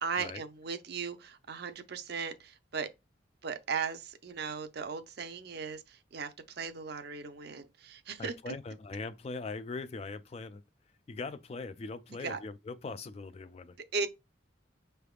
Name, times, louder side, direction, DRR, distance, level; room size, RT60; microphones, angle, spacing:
voice 1, 0.0-2.9 3.4-8.5 12.2-12.4 13.9-14.1, right 5 dB, 60° right, 0.6 m, -37 dB
voice 2, 8.2-10.6 11.1-13.8, left 3 dB, 35° left, 0.3 m, -41 dB
5.7 x 3.4 x 2.3 m
head